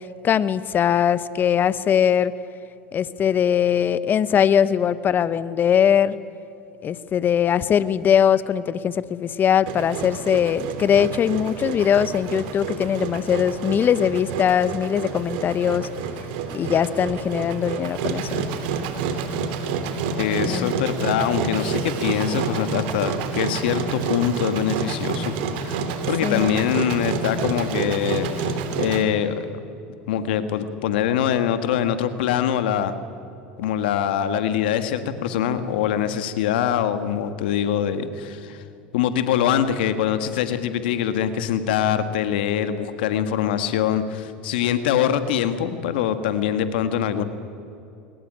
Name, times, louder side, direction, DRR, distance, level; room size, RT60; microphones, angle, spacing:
voice 1, 0.2-2.3 2.9-6.2 6.8-15.9 16.5-18.4 20.4-20.7 26.2-26.6, left 8 dB, 40° left, 16 dB, 1.0 m, -21 dB
Engine, 9.7-29.0, right 5 dB, 70° right, 2.9 m, -28 dB
voice 2, 20.2-25.3 25.6-29.5 30.1-32.9 33.6-38.6 38.9-47.2, left 9 dB, 80° left, 10 dB, 1.7 m, -23 dB
21.5 x 20.0 x 9.1 m, 2.8 s
hypercardioid pair, 85°, 5 cm